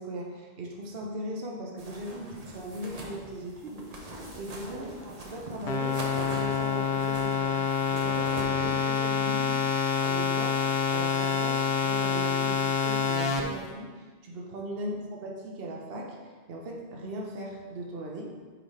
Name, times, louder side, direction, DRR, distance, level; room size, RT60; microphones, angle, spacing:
voice 1, 0.0-9.6 10.0-14.9 15.2-18.3, right 1 dB, 65° right, 0 dB, 1.0 m, -39 dB
sound 1, 1.8-8.8, right 1 dB, 40° right, 0.9 m, -42 dB
sound 2, 5.7-13.4, left 6 dB, 80° left, 1.1 m, -27 dB
5.5 x 4.9 x 4.2 m, 1.4 s
omnidirectional pair, 1.1 m